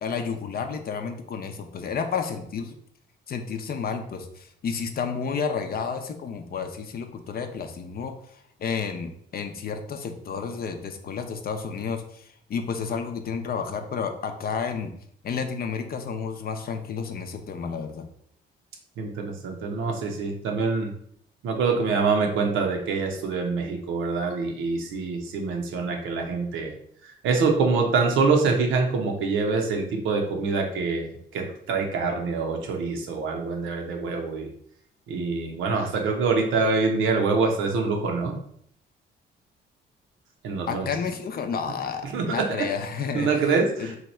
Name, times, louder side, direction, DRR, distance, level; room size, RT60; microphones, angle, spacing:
voice 1, 0.0-2.7 3.3-8.2 8.6-14.9 15.2-18.1 40.7-43.9, left 6 dB, 50° left, 6 dB, 0.5 m, -31 dB
voice 2, 19.0-20.9 21.4-26.7 27.2-34.5 35.1-38.4 40.4-40.9 42.0-42.7 43.1-43.9, right 4 dB, 80° right, 2 dB, 0.7 m, -25 dB
2.8 x 2.2 x 4.1 m, 0.67 s
cardioid pair, 90°, 20 cm